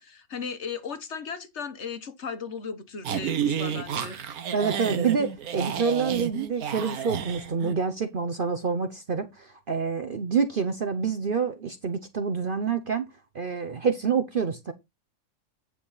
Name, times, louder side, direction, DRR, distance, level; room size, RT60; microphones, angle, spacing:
voice 1, 0.0-4.2, left 5 dB, 50° left, 1.3 m, -36 dB
sound 1, 3.0-7.7, right 8 dB, 80° right, 1.5 m, -31 dB
voice 2, 4.5-13.1 13.3-14.7, right 6 dB, 45° right, 0.8 m, -27 dB
9.4 x 6.1 x 4.0 m
omnidirectional pair, 1.5 m